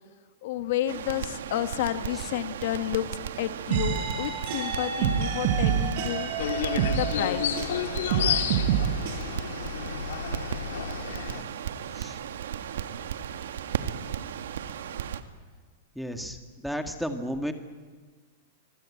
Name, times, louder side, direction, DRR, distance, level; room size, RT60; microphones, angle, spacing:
voice 1, 0.4-6.3 6.9-7.6, left 13 dB, 60° left, 10 dB, 1.2 m, -31 dB
Crackle, 0.9-15.2, right 9 dB, 85° right, 1.7 m, -36 dB
sound 1, 3.7-7.8 8.1-9.2, right 8 dB, 50° right, 6.9 m, -27 dB
sound 2, 6.4-11.4, left 9 dB, 75° left, 2.5 m, -31 dB
voice 2, 15.9-16.4 16.6-17.5, equal, ahead, 5 dB, 1.8 m, -33 dB
25.0 x 22.5 x 8.6 m, 1.4 s
supercardioid pair, 150°, 0 cm